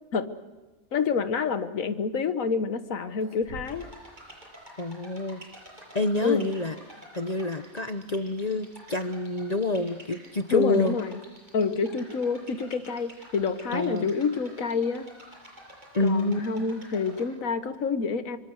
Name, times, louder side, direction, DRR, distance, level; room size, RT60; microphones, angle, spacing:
voice 1, 0.9-3.9 6.2-6.5 10.5-11.2 11.5-15.1 16.0-18.4, left 5 dB, 70° left, 10 dB, 1.7 m, -28 dB
sound 1, 2.5-2.6 3.0-4.1 4.3-4.5 5.3-6.0 7.8-8.1 8.4-8.7 9.0-9.1 9.9-10.0 11.8-13.9, right 1 dB, 65° right, 4.0 m, -50 dB
sound 2, 3.6-17.3, equal, 35° right, 7.1 m, -49 dB
voice 2, 4.8-5.4 5.9-11.0 13.7-14.1 15.9-16.6, left 2 dB, 35° left, 9 dB, 0.9 m, -28 dB
25.0 x 24.5 x 6.5 m, 1.2 s
omnidirectional pair, 1.5 m